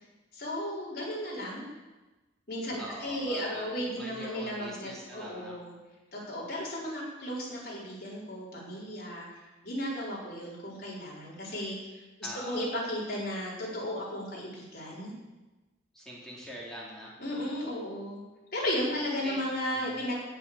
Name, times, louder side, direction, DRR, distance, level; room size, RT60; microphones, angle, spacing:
voice 1, 0.3-1.7 2.5-5.7 6.1-9.3 9.6-12.0 12.4-15.1 17.2-18.2 18.5-20.1, equal, 50° left, -6 dB, 4.7 m, -35 dB
voice 2, 2.8-5.5 12.2-12.6 15.9-17.1 18.9-19.4 19.7-20.0, equal, 5° left, -6 dB, 3.1 m, -43 dB
17.5 x 6.9 x 7.1 m, 1.1 s
head